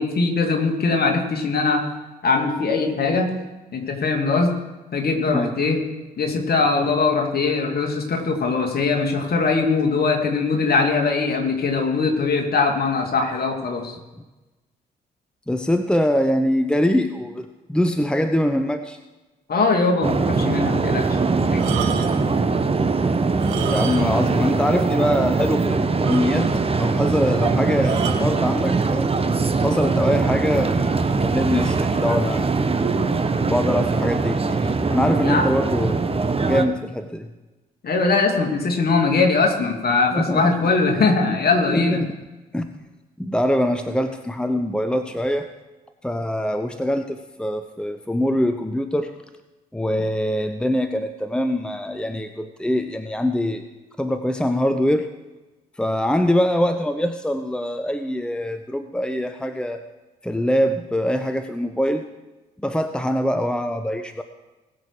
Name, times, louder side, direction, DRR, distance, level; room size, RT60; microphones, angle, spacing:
voice 1, 0.0-1.8 2.2-3.3 3.7-4.5 4.9-5.8 6.2-14.0 19.5-21.2 35.2-35.5 37.8-42.0, left 4 dB, 45° left, 2 dB, 2.6 m, -21 dB
voice 2, 15.5-19.0 23.7-26.5 26.8-29.1 29.6-32.5 33.4-35.9 36.4-37.3 40.1-40.7 41.7-42.1 42.5-42.7 43.2-45.5 46.0-49.1 49.7-53.6 54.0-55.1 55.8-59.8 60.2-62.1 62.6-64.2, equal, 5° left, 9 dB, 0.9 m, -23 dB
sound 1, 20.0-36.6, right 4 dB, 25° right, 1.2 m, -22 dB
sound 2, 21.5-22.4 23.3-24.3 24.6-24.7 25.2-25.3 25.6-25.7 26.0-26.7 27.8-28.3 29.2-29.4, right 9 dB, 70° right, 1.0 m, -32 dB
19.5 x 6.6 x 4.9 m, 1.1 s
figure-of-eight pair, 40°, 21 cm